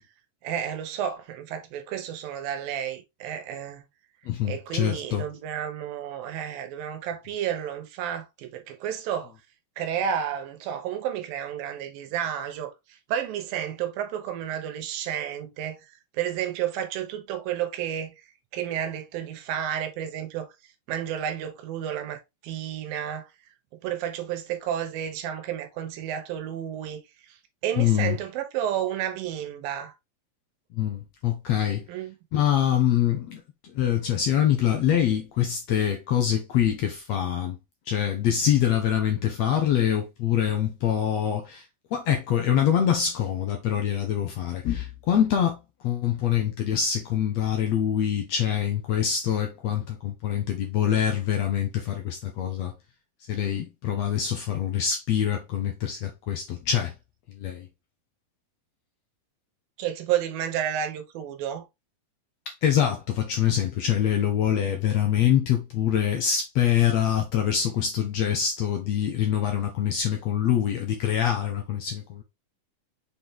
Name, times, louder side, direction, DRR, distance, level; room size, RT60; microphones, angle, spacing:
voice 1, 0.4-3.8 4.4-9.3 9.8-15.8 16.1-18.1 18.5-20.5 20.9-22.2 22.4-23.3 23.8-27.0 27.3-27.4 27.6-29.9 31.9-32.2 59.8-61.6, right 10 dB, 85° right, 2.8 m, -31 dB
voice 2, 4.3-5.3 27.8-28.2 30.7-31.9 32.3-33.4 33.7-37.6 37.9-41.7 41.9-52.7 53.3-56.9 57.3-57.7 62.6-72.2, left 9 dB, 70° left, 1.6 m, -25 dB
6.3 x 4.3 x 3.5 m
omnidirectional pair, 4.0 m